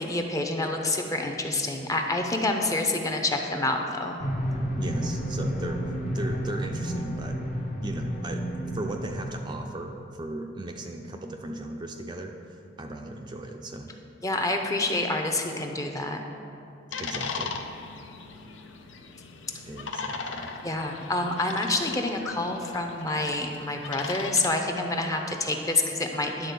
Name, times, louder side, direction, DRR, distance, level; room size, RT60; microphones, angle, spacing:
voice 1, 0.0-4.2 14.2-16.2 20.6-26.5, left 2 dB, 20° left, 3 dB, 0.6 m, -27 dB
sound 1, 4.2-9.6, equal, 45° left, 0.9 m, -31 dB
voice 2, 4.8-7.4 7.8-13.9 17.0-17.6 19.7-20.5, right 2 dB, 25° right, 3 dB, 0.4 m, -37 dB
sound 2, 16.9-24.5, left 4 dB, 90° left, 0.6 m, -38 dB
11.0 x 4.1 x 6.9 m, 2.6 s
head